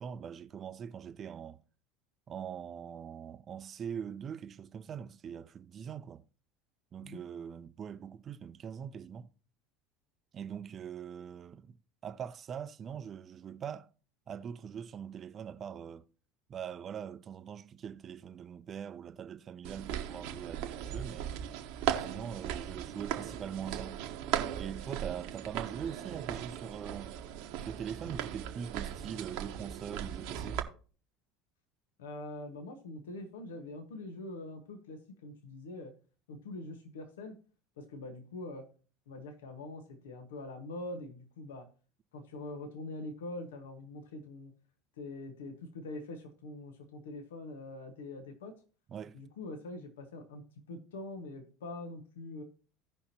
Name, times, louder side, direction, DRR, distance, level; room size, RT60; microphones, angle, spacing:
voice 1, 0.0-1.6 2.3-6.2 6.9-9.3 10.3-11.8 12.0-13.9 14.3-16.0 16.5-21.4 22.0-24.0 24.5-27.2 27.6-30.7 48.9-49.2, right 8 dB, 40° right, 0.6 m, -42 dB
sound 1, 19.6-30.6, right 10 dB, 65° right, 1.2 m, -38 dB
voice 2, 32.0-35.9 36.3-37.3 37.8-38.7 39.1-41.7 42.1-44.5 45.0-48.5 49.1-52.4, left 2 dB, 80° left, 1.4 m, -44 dB
16.5 x 5.7 x 2.9 m
hypercardioid pair, 75°, 0 cm